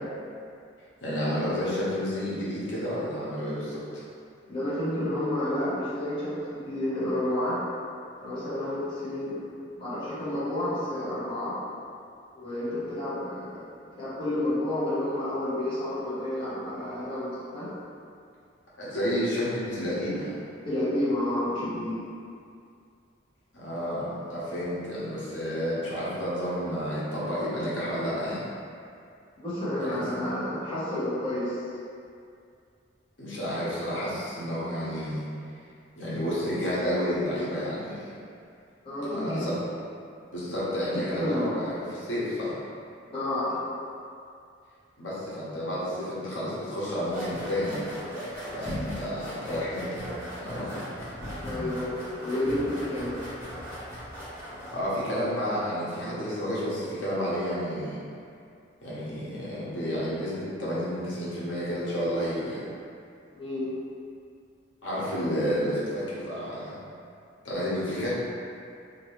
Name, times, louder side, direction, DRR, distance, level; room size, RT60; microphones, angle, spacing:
voice 1, 1.0-4.0 18.8-20.3 23.5-28.4 29.8-30.0 33.2-35.3 36.0-38.1 39.1-39.5 40.3-42.6 45.0-47.9 48.5-50.1 50.4-50.9 54.7-58.0 58.8-62.7 64.8-66.8 67.4-68.2, equal, 80° left, -8 dB, 0.9 m, -30 dB
voice 2, 4.5-7.6 8.2-11.5 12.4-13.6 14.0-17.7 20.6-22.0 29.4-31.5 38.8-39.4 41.2-41.5 43.1-43.6 51.4-53.1 63.3-63.7, left 1 dB, 30° left, -12 dB, 1.0 m, -30 dB
sound 1, 47.0-54.9, equal, 15° right, 1.2 m, -38 dB
2.8 x 2.7 x 3.0 m, 2.4 s
head